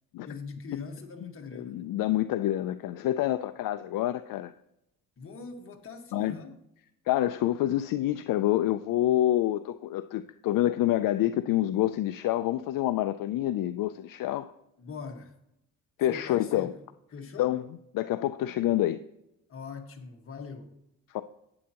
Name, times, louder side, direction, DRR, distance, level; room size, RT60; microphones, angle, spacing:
voice 1, 0.3-1.9 5.2-6.6 14.8-15.3 16.1-16.8 17.1-17.5 19.5-20.7, left 5 dB, 40° left, 1.5 m, -42 dB
voice 2, 1.6-4.5 6.1-6.4 7.1-14.5 16.0-16.7 17.4-17.6 17.9-19.0 21.1-21.2, left 13 dB, 65° left, 0.5 m, -27 dB
11.0 x 8.7 x 2.9 m
cardioid pair, 130°, 35 cm